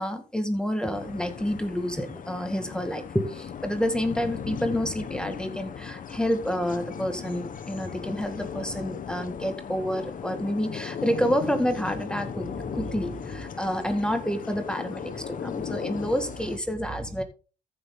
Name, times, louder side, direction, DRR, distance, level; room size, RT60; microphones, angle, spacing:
voice 1, 0.0-17.2, equal, 5° left, 7 dB, 1.9 m, -29 dB
sound 1, 0.9-16.6, left 7 dB, 50° left, 1.2 m, -37 dB
14.5 x 6.6 x 3.8 m, 0.34 s
supercardioid pair, 75°, 18 cm